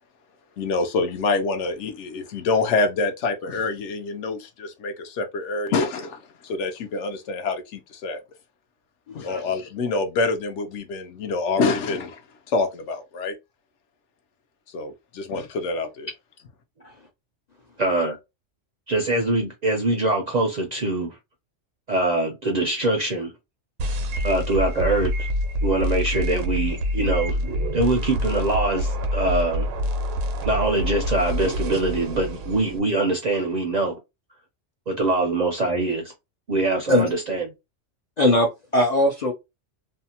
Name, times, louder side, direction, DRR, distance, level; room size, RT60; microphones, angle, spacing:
voice 1, 0.6-8.2 9.1-12.2 12.5-13.3 14.7-16.1, left 3 dB, 75° left, 0.9 m, -26 dB
voice 2, 9.1-9.4 16.8-16.9 24.1-24.2 36.9-37.1 38.2-39.3, left 1 dB, 50° left, 0.5 m, -21 dB
voice 3, 17.8-18.2 18.9-21.2 21.9-23.3 24.2-25.3 25.6-27.4 27.7-29.6 30.4-34.0 34.9-36.1 36.5-37.5, right 2 dB, 55° right, 0.5 m, -23 dB
sound 1, 23.8-32.8, equal, 90° right, 1.0 m, -26 dB
2.7 x 2.1 x 2.8 m
omnidirectional pair, 1.3 m